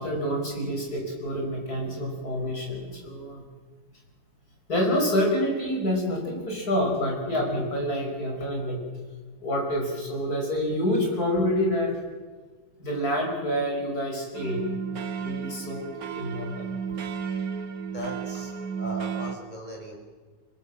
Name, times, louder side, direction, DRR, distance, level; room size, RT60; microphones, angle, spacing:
voice 1, 0.0-3.4 4.7-8.8 9.4-12.0 12.8-14.7 15.2-15.9 16.1-16.7, equal, 50° left, 1 dB, 6.0 m, -27 dB
sound 1, 14.3-19.4, right 6 dB, 55° right, 1.6 m, -33 dB
voice 2, 17.8-20.0, equal, 20° left, -1 dB, 5.9 m, -38 dB
26.5 x 19.0 x 7.7 m, 1.4 s
omnidirectional pair, 2.0 m